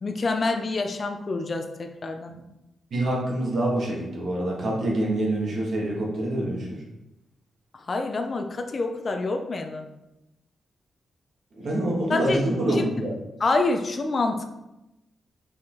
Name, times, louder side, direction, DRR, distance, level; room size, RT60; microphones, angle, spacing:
voice 1, 0.0-2.3 7.7-9.9 12.1-12.4 12.7-12.8 13.4-14.4, left 3 dB, 40° left, 5 dB, 0.6 m, -27 dB
voice 2, 2.9-6.8 11.5-13.2, right 1 dB, 55° right, -3 dB, 1.9 m, -26 dB
5.6 x 4.2 x 3.9 m, 0.93 s
wide cardioid pair, 125°, 0 cm